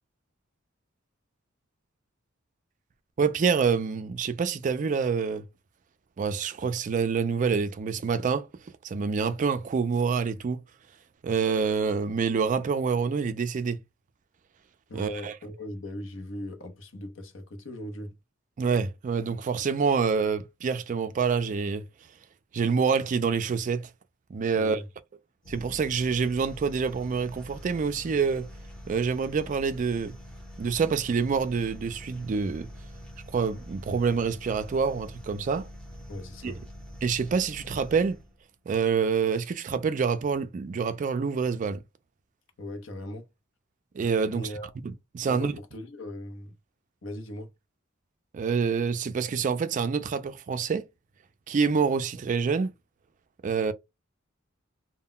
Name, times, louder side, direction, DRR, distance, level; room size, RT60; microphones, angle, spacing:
voice 1, 3.2-5.4 6.2-8.5 8.8-10.6 11.2-13.8 14.9-15.3 18.6-21.8 22.5-23.9 24.3-24.8 25.5-28.5 28.9-30.1 30.6-32.7 33.3-35.7 36.4-36.5 37.0-38.2 38.7-41.8 43.9-44.5 45.1-45.5 48.3-50.8 51.5-52.7 53.4-53.7, right 5 dB, 40° right, 0.3 m, -26 dB
voice 2, 14.9-18.1 24.6-24.9 36.1-36.6 42.6-43.3 44.3-44.7 45.2-46.6 47.0-47.5, left 1 dB, 65° left, 0.7 m, -39 dB
sound 1, 25.4-38.4, equal, 5° left, 0.7 m, -45 dB
2.1 x 2.1 x 3.7 m
head